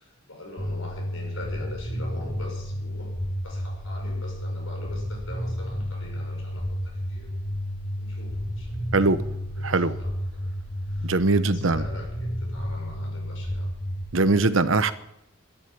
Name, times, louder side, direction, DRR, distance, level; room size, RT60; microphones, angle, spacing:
voice 1, 0.0-7.4 8.0-8.8 9.6-10.5 10.9-13.7, left 2 dB, 85° left, 1 dB, 5.8 m, -43 dB
sound 1, 0.6-14.3, equal, 55° left, 2.9 m, -31 dB
voice 2, 9.6-10.0 11.0-11.9 14.1-14.9, right 3 dB, 80° right, 13 dB, 0.9 m, -21 dB
12.0 x 11.5 x 8.7 m, 0.81 s
head